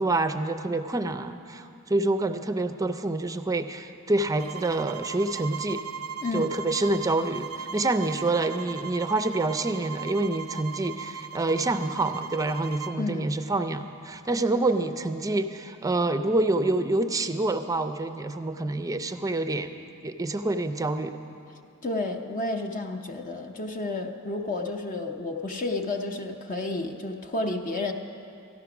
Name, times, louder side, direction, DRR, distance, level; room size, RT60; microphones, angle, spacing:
voice 1, 0.0-5.8 6.3-19.7 20.0-21.2, right 2 dB, 15° right, 9 dB, 0.5 m, -27 dB
sound 1, 4.4-13.0, right 7 dB, 75° right, 0.4 m, -38 dB
voice 2, 6.2-6.5 13.0-13.3 21.8-27.9, left 2 dB, 40° left, 3 dB, 0.7 m, -31 dB
13.5 x 11.0 x 5.9 m, 2.7 s
head